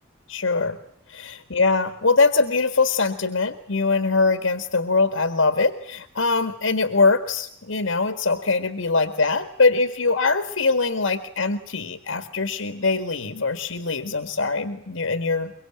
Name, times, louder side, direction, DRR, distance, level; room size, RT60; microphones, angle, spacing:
voice 1, 0.3-0.8 1.1-15.5, left 3 dB, 75° left, 9 dB, 1.8 m, -22 dB
24.0 x 23.5 x 8.8 m, 0.68 s
head